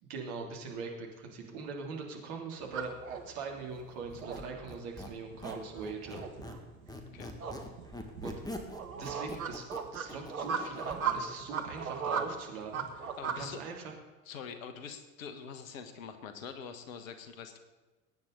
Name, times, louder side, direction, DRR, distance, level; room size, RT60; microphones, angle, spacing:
voice 1, 0.0-2.9 3.2-6.3 8.2-8.4 8.9-9.7 9.9-13.9, right 4 dB, 55° right, 1 dB, 3.2 m, -42 dB
sound 1, 2.6-13.4, right 6 dB, 80° right, 1.5 m, -37 dB
Squeak, 4.1-6.6 6.9-11.0, left 1 dB, 10° left, 1.8 m, -44 dB
voice 2, 13.2-13.6 14.3-17.6, left 6 dB, 65° left, 9 dB, 1.6 m, -44 dB
21.0 x 9.5 x 4.0 m, 1.2 s
figure-of-eight pair, 75°, 42 cm